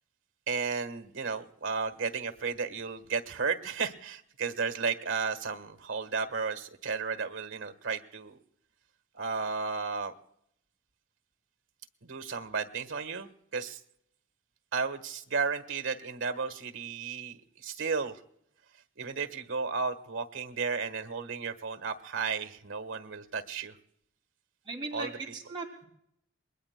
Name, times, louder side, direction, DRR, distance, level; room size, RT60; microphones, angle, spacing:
voice 1, 0.5-8.4 9.1-10.1 12.0-13.8 14.7-18.2 19.0-23.8 24.9-25.1, right 5 dB, 80° right, 9 dB, 1.3 m, -33 dB
voice 2, 24.7-25.9, right 3 dB, 25° right, -2 dB, 2.6 m, -38 dB
27.5 x 21.5 x 2.2 m, 0.73 s
head